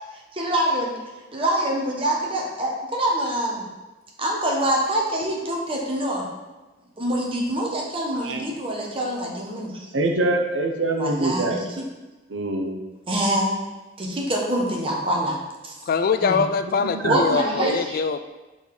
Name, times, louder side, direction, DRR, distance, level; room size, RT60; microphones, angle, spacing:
voice 1, 0.3-0.9 1.3-3.7 4.2-6.2 7.0-9.9 11.0-11.8 13.1-13.5 14.0-15.8 16.2-16.4 17.1-18.0, right 1 dB, 30° right, -2 dB, 1.2 m, -25 dB
voice 2, 8.1-8.5 9.9-11.6 12.3-12.8 16.6-17.2, right 2 dB, 85° right, 3 dB, 0.8 m, -25 dB
voice 3, 15.9-18.2, left 5 dB, 50° left, 9 dB, 0.3 m, -23 dB
5.3 x 4.1 x 4.8 m, 1.1 s
head